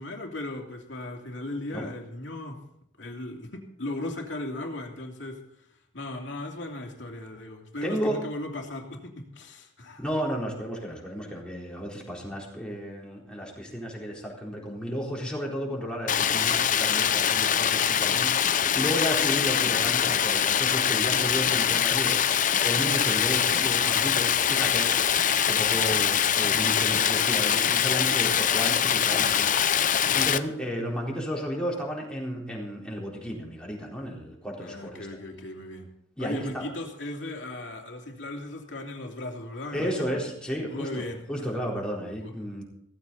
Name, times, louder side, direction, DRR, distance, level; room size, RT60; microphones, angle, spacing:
voice 1, 0.0-2.6 3.0-5.7 5.9-10.0 30.1-30.4 34.6-35.9 36.2-40.2 40.7-41.5 42.2-42.3, left 1 dB, 65° left, 2 dB, 2.9 m, -37 dB
voice 2, 7.8-8.2 10.0-35.1 36.2-36.7 39.7-42.6, equal, 5° left, -3 dB, 4.1 m, -33 dB
Stream, 16.1-30.4, left 9 dB, 45° left, 0.7 m, -23 dB
16.5 x 15.0 x 4.1 m, 0.74 s
head